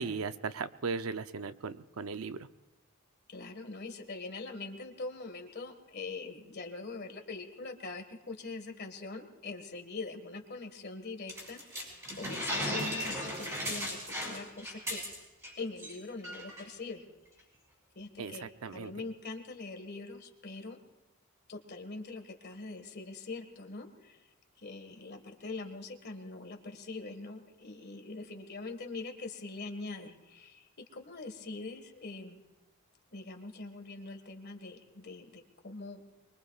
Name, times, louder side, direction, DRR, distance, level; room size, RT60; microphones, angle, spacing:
voice 1, 0.0-2.5 18.2-18.9, right 5 dB, 80° right, 11 dB, 0.6 m, -37 dB
voice 2, 3.3-15.0 15.6-17.0 18.0-20.8 21.5-24.2 24.6-32.4 33.1-36.0, left 3 dB, 50° left, 5 dB, 1.7 m, -43 dB
sound 1, 11.3-15.5 15.8-15.9 16.2-16.6, equal, 15° right, 6.1 m, -36 dB
24.5 x 22.5 x 2.4 m, 1.0 s
head